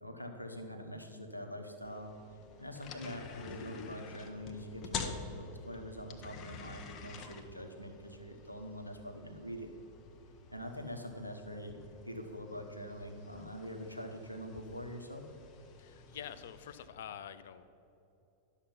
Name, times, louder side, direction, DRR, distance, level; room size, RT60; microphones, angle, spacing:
voice 1, 0.0-2.2 2.6-9.7 10.5-11.8 12.0-15.2, equal, 90° left, 4 dB, 1.0 m, -44 dB
sound 1, 1.8-16.9, left 5 dB, 35° left, 1.0 m, -48 dB
voice 2, 15.8-17.7, left 9 dB, 60° left, 13 dB, 0.5 m, -46 dB
11.5 x 6.9 x 5.6 m, 3.0 s
figure-of-eight pair, 90°, 0 cm